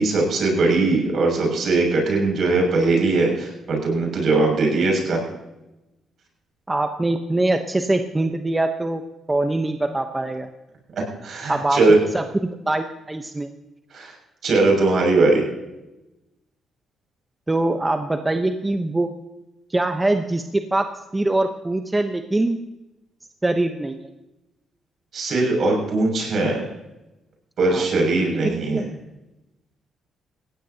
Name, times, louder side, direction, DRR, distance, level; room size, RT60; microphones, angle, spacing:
voice 1, 0.0-5.2 11.2-12.0 13.9-14.1 14.4-15.4 25.1-26.6 27.6-28.8, right 3 dB, 60° right, 1 dB, 6.5 m, -20 dB
voice 2, 6.7-9.0 9.3-10.5 11.5-11.8 12.1-12.2 12.7-13.5 17.5-19.1 19.7-22.6 23.4-24.1 27.7-27.9 28.3-28.8, right 2 dB, 15° right, 6 dB, 1.0 m, -23 dB
19.5 x 16.0 x 2.9 m, 0.97 s
cardioid pair, 90°, 0 cm